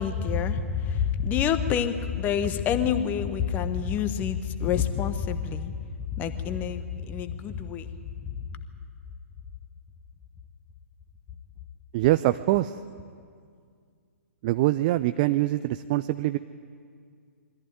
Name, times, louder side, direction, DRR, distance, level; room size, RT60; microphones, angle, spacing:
voice 1, 0.0-8.6, left 8 dB, 20° left, 10 dB, 1.2 m, -28 dB
voice 2, 11.9-12.8 14.4-16.4, right 16 dB, 35° right, 11 dB, 0.5 m, -24 dB
23.0 x 14.5 x 9.1 m, 2.2 s
figure-of-eight pair, 120°, 8 cm